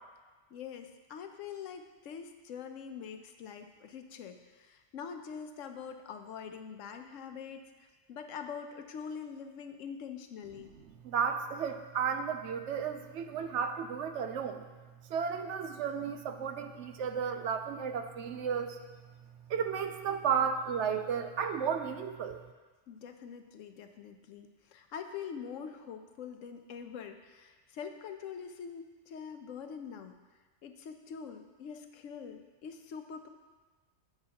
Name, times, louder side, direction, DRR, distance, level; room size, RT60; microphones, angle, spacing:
voice 1, 0.5-10.7 22.9-30.2 30.6-33.3, left 7 dB, 80° left, 7 dB, 1.0 m, -44 dB
voice 2, 11.0-14.6 15.1-18.8 19.5-22.4, right 7 dB, 70° right, 7 dB, 0.9 m, -33 dB
9.6 x 7.9 x 2.9 m, 1.3 s
omnidirectional pair, 1.3 m